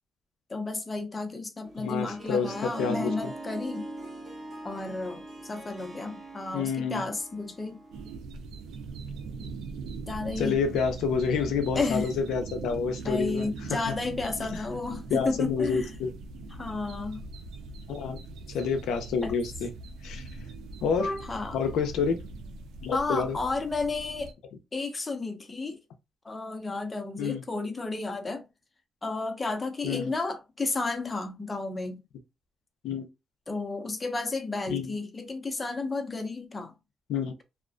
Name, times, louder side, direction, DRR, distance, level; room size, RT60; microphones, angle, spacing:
voice 1, 0.5-3.9 4.6-7.8 10.1-10.6 11.8-12.1 13.0-16.0 16.5-17.3 19.2-19.3 21.0-21.6 22.9-24.3 24.7-25.8 26.2-28.5 29.0-32.0 33.5-36.7, left 3 dB, 25° left, 0.6 m, -32 dB
Harp, 1.6-8.1, right 1 dB, 35° right, 1.0 m, -41 dB
voice 2, 1.8-3.3 6.5-7.0 10.4-13.8 15.1-16.1 17.9-18.2 18.5-19.7 20.0-20.2 20.8-21.1 21.5-22.2 22.8-23.4 27.2-27.4 29.8-30.1 32.8-33.1 34.7-34.9 37.1-37.3, left 5 dB, 80° left, 0.4 m, -28 dB
sound 1, 7.9-24.3, right 3 dB, 85° right, 0.4 m, -41 dB
2.4 x 2.1 x 2.4 m
cardioid pair, 90°, 0 cm